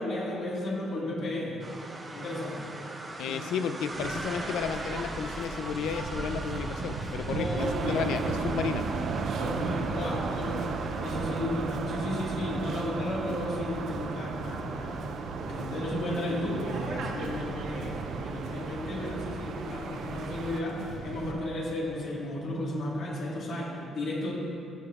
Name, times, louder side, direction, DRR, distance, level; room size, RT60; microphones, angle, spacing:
voice 1, 0.0-1.6 2.1-2.7 3.2-3.3 7.3-8.0 9.4-10.7 11.0-15.0 15.4-24.3, left 1 dB, 60° left, -4 dB, 1.6 m, -33 dB
sound 1, 1.6-11.4, right 2 dB, 25° right, 0.7 m, -41 dB
voice 2, 3.2-8.8, left 7 dB, 90° left, 9 dB, 0.4 m, -33 dB
Waves surf, 3.9-21.3, right 3 dB, 75° right, 0.9 m, -38 dB
sound 2, 7.6-20.6, right 6 dB, 60° right, 0.4 m, -36 dB
13.5 x 6.7 x 2.4 m, 2.6 s
cardioid pair, 140°, 0 cm